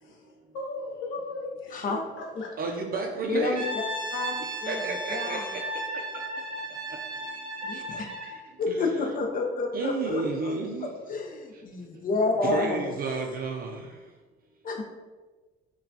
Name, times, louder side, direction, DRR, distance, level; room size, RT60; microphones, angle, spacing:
voice 1, 0.0-2.5, left 2 dB, 70° left, -1 dB, 1.0 m, -37 dB
voice 2, 2.6-3.6 4.7-5.6 8.2-8.4 8.7-9.0 9.7-10.9 12.4-13.8, right 4 dB, 45° right, 2 dB, 0.4 m, -31 dB
voice 3, 3.3-3.6 4.1-4.3 4.6-4.9 5.1-5.5 7.6-8.1 8.6-10.5 10.8-12.8 14.6-14.9, left 3 dB, 40° left, 3 dB, 0.6 m, -29 dB
Brass instrument, 3.5-8.4, right 1 dB, 25° right, 1.0 m, -35 dB
5.4 x 2.3 x 2.7 m, 1.3 s
cardioid pair, 100°, 21 cm